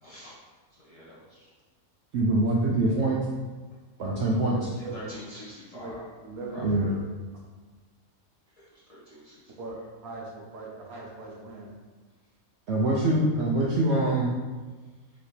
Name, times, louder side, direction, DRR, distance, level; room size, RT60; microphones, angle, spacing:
voice 1, 0.0-0.3 0.7-1.5 4.9-6.1 6.5-6.6 8.5-9.5, equal, 30° left, -9 dB, 1.1 m, -46 dB
voice 2, 2.1-3.2 4.0-4.6 6.6-6.9 12.7-14.3, right 2 dB, 65° right, -4 dB, 0.8 m, -24 dB
voice 3, 4.0-5.1 5.8-5.9 6.2-7.0 9.6-9.8 10.0-11.7, right 2 dB, 80° right, -3 dB, 1.4 m, -40 dB
5.0 x 3.0 x 3.2 m, 1.3 s
omnidirectional pair, 1.5 m